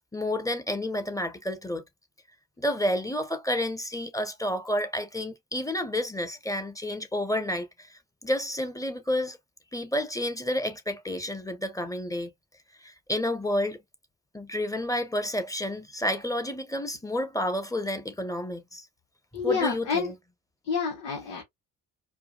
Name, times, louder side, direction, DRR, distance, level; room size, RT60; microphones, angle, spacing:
voice 1, 0.0-1.8 2.6-9.4 9.7-12.3 12.8-13.8 14.3-18.9 19.4-20.2, left 1 dB, 5° left, 1.1 m, -30 dB
voice 2, 19.3-20.1 20.7-21.4, left 5 dB, 65° left, 1.5 m, -28 dB
4.9 x 2.4 x 2.4 m
figure-of-eight pair, 45°, 46 cm